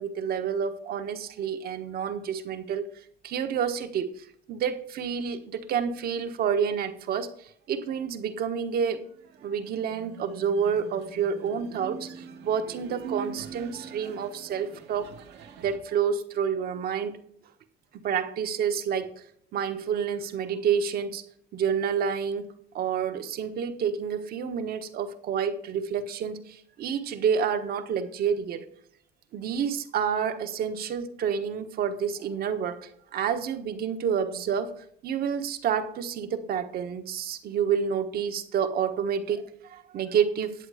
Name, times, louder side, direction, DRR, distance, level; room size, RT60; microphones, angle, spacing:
voice 1, 0.0-2.9 3.2-7.3 7.7-9.0 9.4-15.2 15.6-17.2 18.0-19.1 19.5-21.2 21.5-22.5 22.7-28.6 29.3-34.7 35.0-40.5, right 7 dB, 65° right, 8 dB, 1.2 m, -29 dB
sound 1, 8.5-15.8, right 6 dB, 85° right, 1.5 m, -44 dB
10.5 x 8.1 x 4.9 m, 0.67 s
cardioid pair, 110°, 17 cm